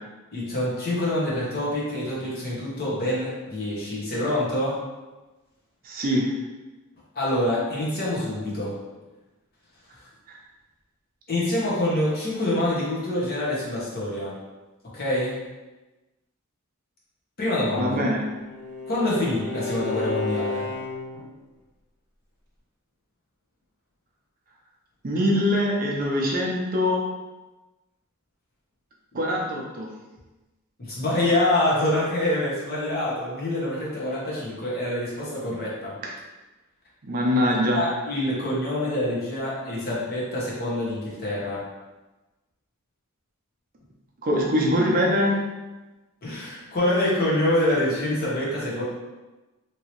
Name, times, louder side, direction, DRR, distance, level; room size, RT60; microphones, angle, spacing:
voice 1, 0.3-4.8 7.1-8.7 11.3-14.3 14.9-15.4 17.4-18.0 18.9-20.6 30.8-36.0 37.7-41.6 46.2-48.8, left 1 dB, 45° left, -6 dB, 1.0 m, -26 dB
voice 2, 5.8-6.3 10.3-10.4 17.8-18.3 25.0-27.0 29.1-29.9 36.0-36.1 37.0-37.9 44.2-45.4, equal, 40° right, -2 dB, 0.5 m, -23 dB
Bowed string instrument, 17.7-21.3, left 3 dB, 15° left, 1.0 m, -33 dB
3.0 x 2.7 x 2.9 m, 1.1 s
head